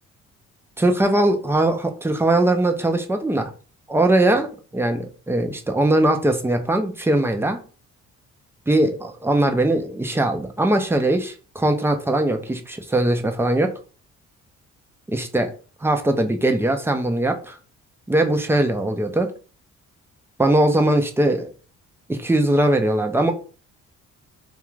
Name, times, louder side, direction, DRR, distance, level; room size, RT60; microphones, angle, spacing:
voice 1, 0.8-3.5 3.9-7.6 8.7-13.7 15.1-15.5 15.8-17.6 18.1-19.3 20.4-21.5 22.1-23.3, right 1 dB, 10° right, 5 dB, 0.4 m, -20 dB
2.4 x 2.3 x 3.0 m, 0.38 s
cardioid pair, 90°, 30 cm